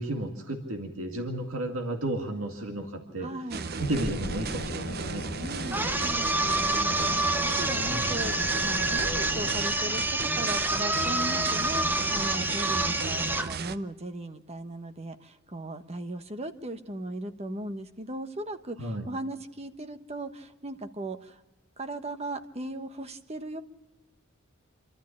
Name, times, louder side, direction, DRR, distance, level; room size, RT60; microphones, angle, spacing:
voice 1, 0.0-3.3 3.8-5.2 7.7-8.1 18.8-19.0, right 1 dB, 80° right, 3 dB, 2.2 m, -33 dB
voice 2, 3.2-3.7 5.4-21.4 21.8-23.6, right 1 dB, 30° right, 9 dB, 1.2 m, -38 dB
sound 1, 3.5-13.8, right 4 dB, 50° right, 0.7 m, -36 dB
sound 2, 3.8-9.7, left 2 dB, 55° left, 1.1 m, -39 dB
sound 3, 5.7-13.5, right 2 dB, 10° right, 0.7 m, -28 dB
27.0 x 13.0 x 8.5 m, 1.1 s
head